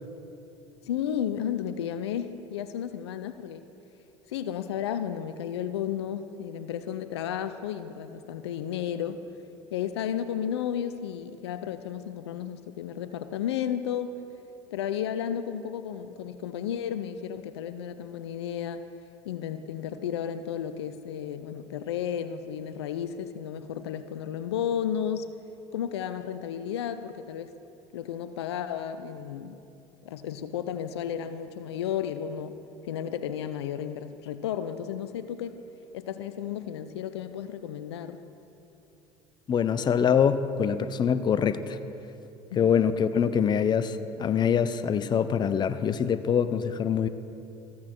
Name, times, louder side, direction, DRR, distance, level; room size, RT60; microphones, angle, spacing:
voice 1, 0.9-3.6 4.3-9.2 9.7-14.1 14.7-18.8 19.2-25.3 25.7-27.5 27.9-29.6 30.0-32.6 32.8-35.6 35.9-38.2 42.5-42.6, left 9 dB, 85° left, 11 dB, 0.5 m, -33 dB
voice 2, 39.5-41.8 42.6-47.1, left 7 dB, 35° left, 12 dB, 0.5 m, -24 dB
14.0 x 8.5 x 4.4 m, 2.8 s
hypercardioid pair, 70°, 14 cm